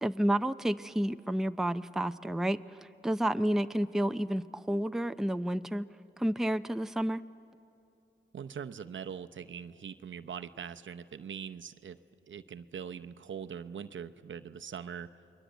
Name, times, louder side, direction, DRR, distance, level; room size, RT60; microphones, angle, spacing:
voice 1, 0.0-2.8 3.0-5.9 6.2-7.2, right 1 dB, ahead, 10 dB, 0.5 m, -30 dB
voice 2, 8.3-12.0 12.3-15.1, right 7 dB, 70° right, 10 dB, 0.7 m, -42 dB
29.0 x 21.5 x 8.1 m, 2.7 s
cardioid pair, 55°, 21 cm